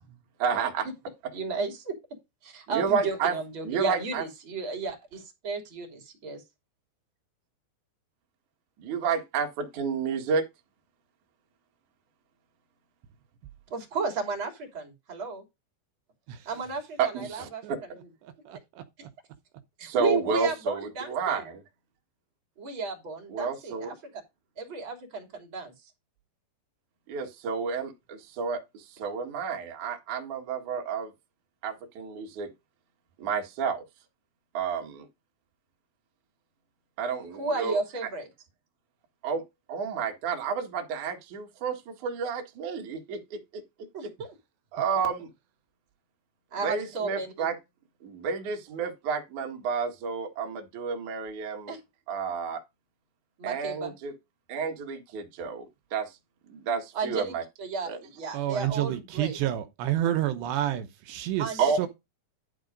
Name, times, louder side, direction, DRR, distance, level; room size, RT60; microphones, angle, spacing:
voice 1, 0.4-0.9 2.7-3.3 3.6-4.2 8.8-10.4 17.0-17.8 19.8-21.6 23.3-23.9 27.1-31.1 31.6-32.5 33.2-33.8 34.5-35.1 37.0-37.8 39.2-39.4 39.7-43.4 44.7-45.3 46.6-47.6 48.0-51.7 52.1-52.6 53.4-54.1 54.5-56.2 56.5-57.4 57.9-58.0 61.6-61.9, right 5 dB, 50° right, 2.9 m, -30 dB
voice 2, 1.3-2.0 2.4-6.4 13.7-15.4 16.5-17.6 19.8-21.5 22.6-23.9 24.6-25.7 37.3-38.3 43.9-44.3 46.5-47.5 51.7-51.8 53.4-53.9 56.9-59.4 61.4-61.7, right 4 dB, 30° right, 3.5 m, -33 dB
voice 3, 18.5-18.8 58.3-61.9, right 12 dB, 80° right, 3.1 m, -29 dB
12.0 x 4.4 x 5.1 m
omnidirectional pair, 5.0 m